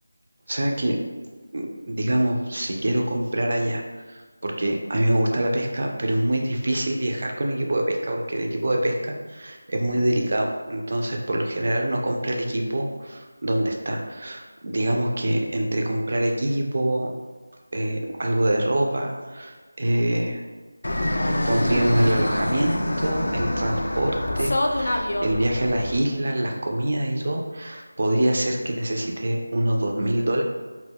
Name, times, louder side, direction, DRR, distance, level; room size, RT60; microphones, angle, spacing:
voice 1, 0.5-1.0 1.5-17.1 17.7-20.4 21.4-30.4, right 1 dB, 45° right, 1 dB, 0.4 m, -25 dB
Fixed-wing aircraft airplane, 20.8-26.0, left 1 dB, 60° left, 0.3 m, -26 dB
2.2 x 2.1 x 3.4 m, 1.4 s
figure-of-eight pair, 175°, 0 cm